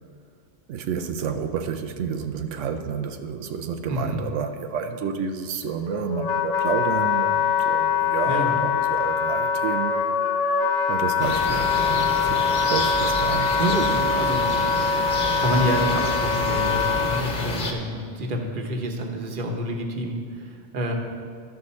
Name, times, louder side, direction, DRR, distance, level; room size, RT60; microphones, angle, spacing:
voice 1, 0.7-10.1 10.9-13.6, right 6 dB, 90° right, 6 dB, 0.9 m, -30 dB
voice 2, 3.9-4.2 8.3-8.6 13.6-14.8 15.4-20.9, equal, 45° right, 3 dB, 1.1 m, -28 dB
Wind instrument woodwind instrument, 5.6-17.2, left 6 dB, 90° left, 1.1 m, -23 dB
sound 1, 11.2-17.7, left 2 dB, 45° left, 1.1 m, -29 dB
12.5 x 6.5 x 4.2 m, 2.1 s
omnidirectional pair, 1.2 m